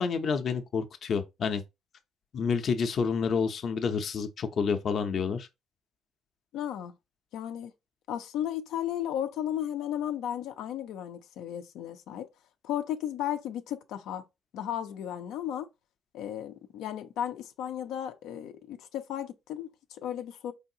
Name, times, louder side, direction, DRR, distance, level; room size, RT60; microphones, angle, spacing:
voice 1, 0.0-1.6 2.3-5.5, left 5 dB, 40° left, 0.6 m, -29 dB
voice 2, 6.5-6.9 7.3-7.7 8.1-12.3 12.6-14.2 14.5-15.7 16.1-20.5, left 10 dB, 90° left, 0.5 m, -34 dB
4.6 x 3.4 x 2.7 m
cardioid pair, 160°, 0 cm